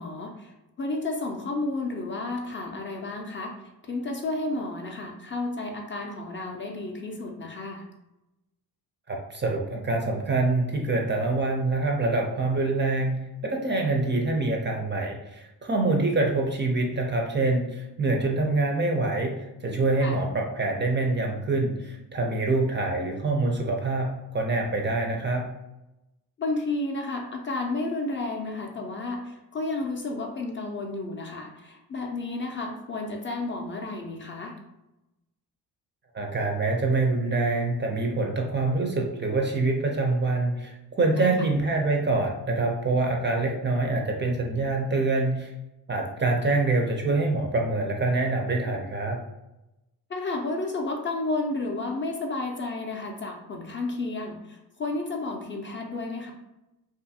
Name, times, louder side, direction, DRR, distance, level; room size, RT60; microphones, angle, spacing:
voice 1, 0.0-3.5 3.8-7.9 20.0-20.2 26.4-34.6 41.2-41.3 50.1-56.3, left 2 dB, 30° left, 1 dB, 0.4 m, -32 dB
voice 2, 9.1-13.2 13.4-25.5 36.1-45.5 45.9-49.2, right 2 dB, 30° right, 1 dB, 0.4 m, -25 dB
2.6 x 2.4 x 2.6 m, 0.95 s
cardioid pair, 80°, 40 cm